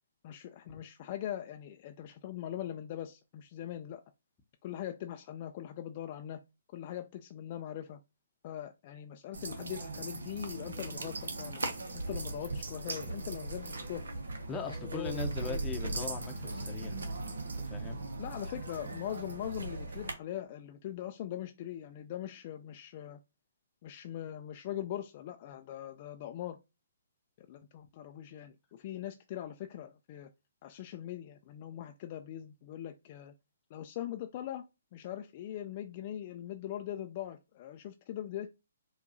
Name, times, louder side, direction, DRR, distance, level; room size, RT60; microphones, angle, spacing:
voice 1, 0.2-4.0 4.6-6.4 6.7-8.0 8.4-11.6 11.9-14.1 14.6-15.7 18.2-23.2 23.8-26.6 27.4-30.3 30.6-33.3 33.7-34.6 34.9-38.5, left 11 dB, 40° left, 0.3 m, -41 dB
sound 1, 9.3-20.1, right 2 dB, 75° right, 0.8 m, -39 dB
voice 2, 14.5-17.0 17.6-18.0, left 4 dB, 20° left, 0.7 m, -40 dB
4.6 x 2.3 x 2.6 m
figure-of-eight pair, 135°, 0 cm